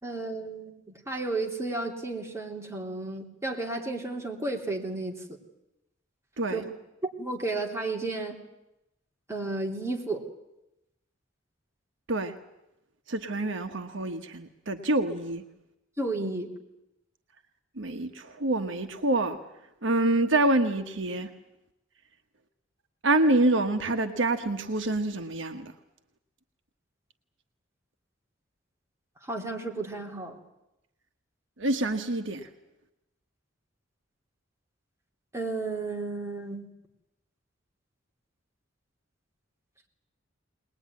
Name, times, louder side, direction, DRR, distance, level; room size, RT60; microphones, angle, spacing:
voice 1, 0.0-0.7 1.1-5.2 6.5-6.7 7.2-8.4 9.3-10.2 16.0-16.5 29.3-30.4 35.3-36.7, right 2 dB, 15° right, 0 dB, 3.2 m, -32 dB
voice 2, 13.1-15.4 17.8-19.4 19.8-21.3 23.0-25.7 31.6-32.5, right 2 dB, 65° right, 6 dB, 1.3 m, -26 dB
21.0 x 20.5 x 9.6 m, 0.90 s
head